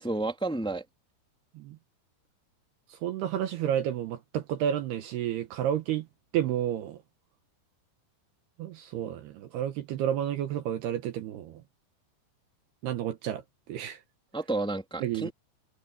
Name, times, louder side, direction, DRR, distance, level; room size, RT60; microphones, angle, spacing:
voice 1, 0.0-0.8 14.3-15.3, right 2 dB, ahead, 2.6 m, -31 dB
voice 2, 2.9-6.1 6.3-7.0 8.6-11.6 12.8-13.4 13.7-14.0 15.0-15.3, right 10 dB, 75° right, 2.9 m, -31 dB
omnidirectional pair, 5.2 m